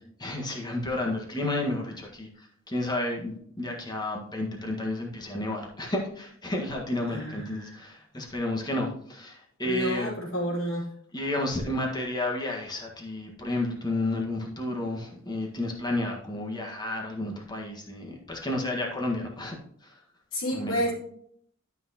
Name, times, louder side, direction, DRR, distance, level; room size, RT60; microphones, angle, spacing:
voice 1, 0.2-10.2 10.5-10.6 11.1-19.6 19.8-19.9 20.5-20.8, left 1 dB, 20° left, 0 dB, 1.6 m, -31 dB
voice 2, 7.1-7.4 8.2-8.3 9.6-10.8 20.3-20.9, equal, 75° left, -5 dB, 3.7 m, -29 dB
12.0 x 6.0 x 2.9 m, 0.66 s
head